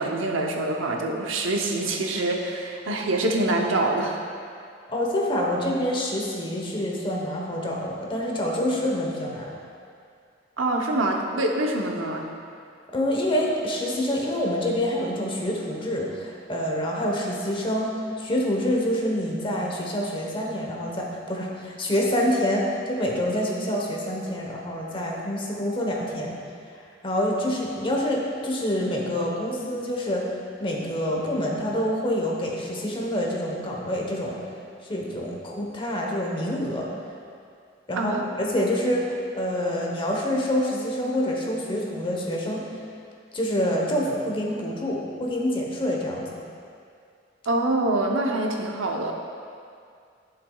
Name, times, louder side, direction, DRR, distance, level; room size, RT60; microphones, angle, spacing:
voice 1, 0.0-4.2 10.6-12.3 37.9-38.2 47.5-49.1, right 2 dB, 90° right, 1 dB, 0.8 m, -25 dB
voice 2, 4.9-9.5 12.9-26.4 27.0-30.3 30.6-34.4 34.9-36.9 37.9-39.1 39.3-42.6 43.3-46.3, equal, 25° left, -2 dB, 1.0 m, -26 dB
11.5 x 6.8 x 2.3 m, 2.3 s
head